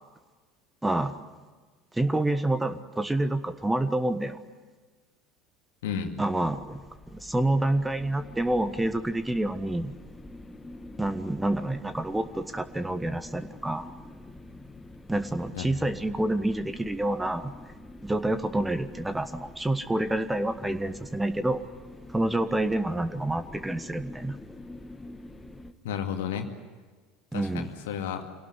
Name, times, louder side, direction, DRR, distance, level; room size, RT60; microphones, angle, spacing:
voice 1, 0.8-1.1 1.9-4.4 6.2-6.8 7.1-9.9 11.0-13.9 15.1-17.5 18.0-21.6 22.1-24.4 27.3-27.7, right 1 dB, 10° right, 11 dB, 1.4 m, -28 dB
voice 2, 5.8-6.2 15.5-15.8 25.8-26.5 27.3-28.2, left 8 dB, 65° left, 5 dB, 2.1 m, -32 dB
sound 1, 6.4-25.7, left 2 dB, 15° left, 1.5 m, -46 dB
26.0 x 18.0 x 9.9 m, 1.4 s
figure-of-eight pair, 70°, 0 cm